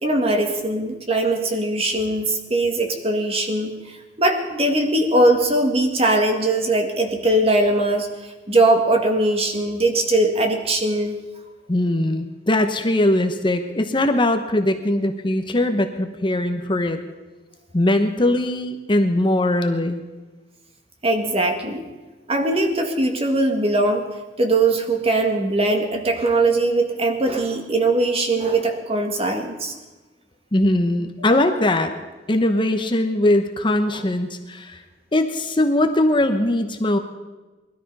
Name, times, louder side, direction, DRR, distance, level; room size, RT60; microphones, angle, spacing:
voice 1, 0.0-11.2 21.0-21.8 22.3-24.1 24.4-29.8 31.2-31.4 33.9-34.0, right 2 dB, 35° right, 4 dB, 1.8 m, -21 dB
voice 2, 11.7-17.0 17.7-20.0 30.5-31.9 32.3-34.8 35.1-37.0, left 1 dB, 30° left, 7 dB, 1.0 m, -20 dB
20.0 x 13.0 x 5.5 m, 1.2 s
head